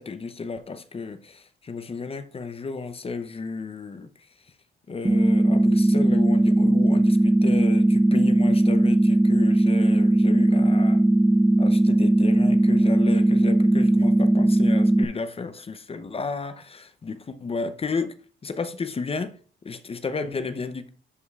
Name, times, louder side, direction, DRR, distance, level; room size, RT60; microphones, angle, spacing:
voice 1, 0.0-4.1 4.9-11.0 11.6-18.2 18.4-19.4 19.6-20.9, left 4 dB, 30° left, 0.7 m, -32 dB
sound 1, 5.0-15.0, right 1 dB, 5° right, 0.4 m, -19 dB
11.0 x 5.2 x 2.4 m
cardioid pair, 90°, 20 cm